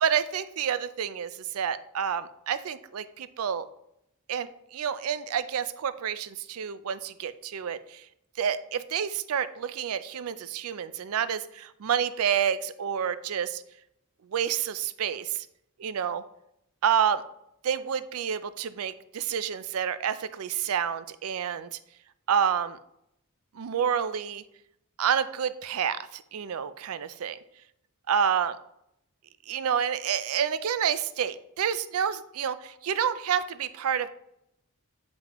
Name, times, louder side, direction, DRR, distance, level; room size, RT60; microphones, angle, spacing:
voice 1, 0.0-3.7 4.3-8.0 8.4-13.6 14.3-15.5 15.8-16.2 16.8-17.2 17.6-21.8 22.3-22.8 23.5-24.4 25.0-27.4 28.1-28.6 29.5-34.1, right 8 dB, 80° right, 14 dB, 0.4 m, -29 dB
7.5 x 5.3 x 3.0 m, 0.79 s
head